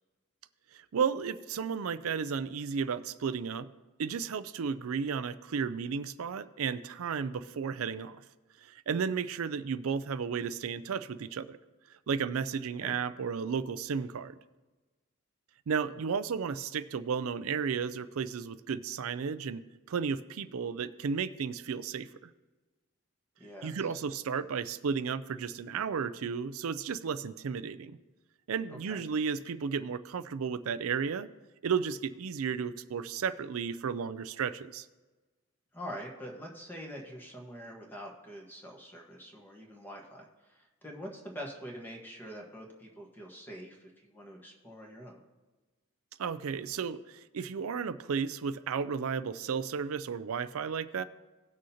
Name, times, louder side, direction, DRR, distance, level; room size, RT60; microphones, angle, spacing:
voice 1, 0.7-3.7 4.0-8.2 8.6-11.6 12.1-14.4 15.7-22.3 23.6-28.0 28.5-31.3 31.6-34.9 46.2-51.0, right 6 dB, 80° right, 14 dB, 0.4 m, -33 dB
voice 2, 23.4-23.9 28.7-29.0 35.7-45.2, equal, 10° left, -1 dB, 1.4 m, -45 dB
18.0 x 6.3 x 2.8 m, 1.2 s
head